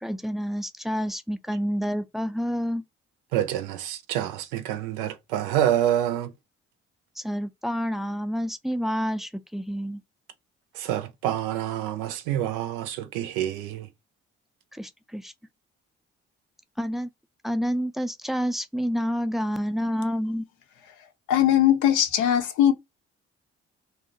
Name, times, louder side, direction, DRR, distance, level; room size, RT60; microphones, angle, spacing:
voice 1, 0.0-2.8 7.2-10.0 14.7-15.3 16.8-17.1 17.4-20.5, equal, ahead, 0.3 m, -28 dB
voice 2, 3.3-6.3 10.7-13.9, right 11 dB, 85° right, 0.5 m, -27 dB
voice 3, 21.3-22.7, left 11 dB, 70° left, 0.6 m, -20 dB
2.7 x 2.0 x 2.5 m
hypercardioid pair, 50°, 32 cm